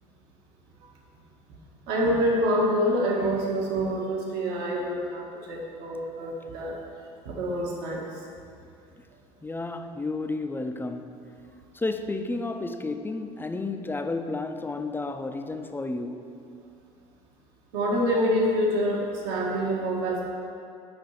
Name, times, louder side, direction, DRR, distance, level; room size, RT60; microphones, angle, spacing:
voice 1, 1.9-6.8 7.2-8.1 17.7-20.3, equal, 60° right, 1.7 m, -26 dB
voice 2, 9.4-11.3 11.7-16.3, left 3 dB, 10° left, 0.6 m, -32 dB
7.0 x 5.6 x 7.3 m
hypercardioid pair, 70°, 19 cm